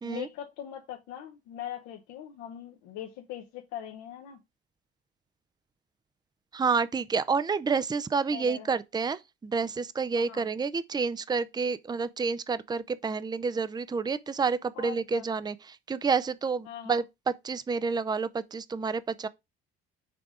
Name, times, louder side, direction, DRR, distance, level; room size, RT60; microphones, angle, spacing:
voice 1, 0.0-4.4 8.3-8.7 10.2-10.4 14.7-15.3 16.7-17.0, left 10 dB, 70° left, 1.0 m, -41 dB
voice 2, 6.5-19.3, right 5 dB, 15° right, 0.5 m, -29 dB
6.0 x 3.5 x 4.9 m
hypercardioid pair, 55°, 30 cm